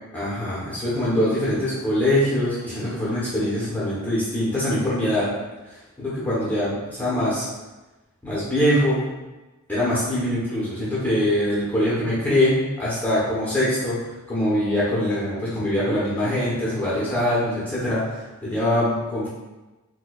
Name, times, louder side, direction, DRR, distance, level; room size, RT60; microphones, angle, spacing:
voice 1, 0.1-5.3 5.7-7.5 8.2-9.0 9.7-14.0 14.3-19.3, left 1 dB, 5° left, -9 dB, 0.8 m, -23 dB
4.4 x 2.2 x 2.3 m, 1.1 s
head